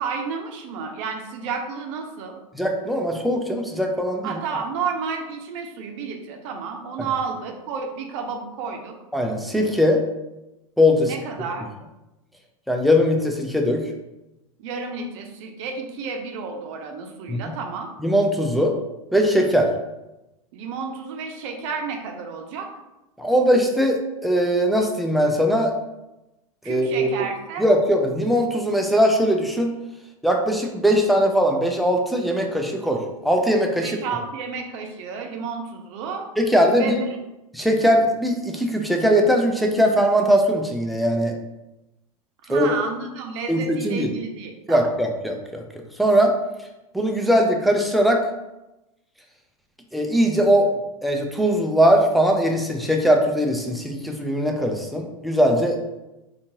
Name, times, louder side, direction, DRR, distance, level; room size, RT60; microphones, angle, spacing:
voice 1, 0.0-2.4 4.2-9.0 11.0-11.7 14.6-17.9 20.5-22.7 26.6-27.6 33.8-36.3 36.7-36.9 42.4-44.9, right 5 dB, 55° right, 3 dB, 0.6 m, -31 dB
voice 2, 2.5-4.4 7.0-7.1 9.1-10.0 10.8-11.1 12.7-13.9 17.3-17.5 18.0-18.8 19.1-19.7 23.2-25.7 26.7-27.1 27.6-29.8 30.2-34.0 36.4-37.0 37.5-41.3 42.5-42.7 43.5-44.1 44.7-45.6 46.0-46.3 46.9-48.2 49.9-50.7 51.0-55.8, equal, ahead, 2 dB, 0.4 m, -20 dB
3.7 x 2.4 x 2.7 m, 0.97 s
hypercardioid pair, 110°, 19 cm